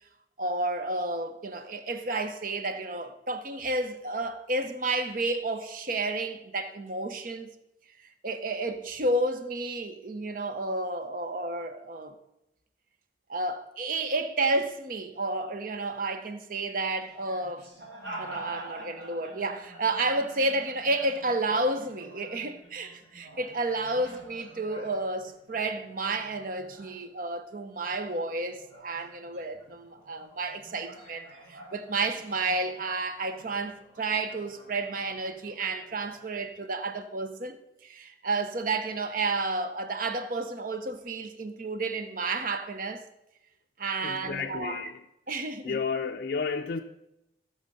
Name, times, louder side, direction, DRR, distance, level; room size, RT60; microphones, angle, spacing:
voice 1, 0.4-7.5 8.0-12.1 13.3-17.7 18.2-43.0 43.8-44.8 45.3-45.8, right 2 dB, 50° right, 0.8 m, -31 dB
sound 1, 17.0-27.5 27.8-36.5, right 1 dB, 85° right, 4.6 m, -48 dB
voice 2, 44.0-45.0 45.6-46.8, left 5 dB, 50° left, 0.4 m, -32 dB
15.5 x 6.5 x 5.4 m
head